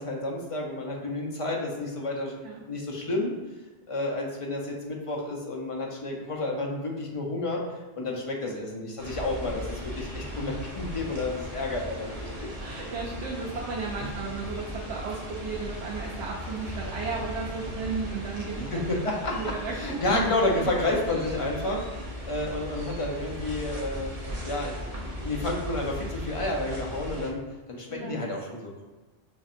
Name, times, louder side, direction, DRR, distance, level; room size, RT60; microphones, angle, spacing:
voice 1, 0.0-2.4 2.6-3.3 3.9-7.6 8.0-12.5 18.6-24.1 24.4-27.4 27.7-28.9, left 2 dB, 35° left, -1 dB, 0.6 m, -30 dB
voice 2, 8.4-8.9 12.6-18.8 19.3-20.7 27.9-28.2, right 4 dB, 90° right, -4 dB, 1.0 m, -35 dB
sound 1, 9.0-27.3, equal, 35° right, 0.8 m, -37 dB
5.5 x 2.6 x 2.5 m, 1.3 s
omnidirectional pair, 1.1 m